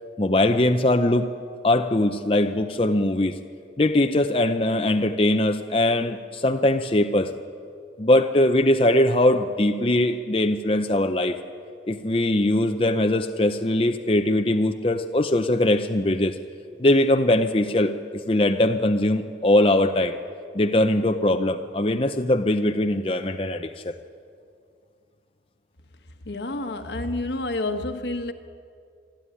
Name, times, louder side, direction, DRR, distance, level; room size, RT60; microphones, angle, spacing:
voice 1, 0.2-1.3 1.6-3.4 3.8-7.3 8.0-11.4 11.9-16.3 16.8-17.9 18.3-20.2 20.5-23.9, left 1 dB, 30° left, 0.7 m, -21 dB
voice 2, 26.2-28.3, left 2 dB, 75° left, 1.4 m, -29 dB
25.5 x 13.0 x 9.8 m
head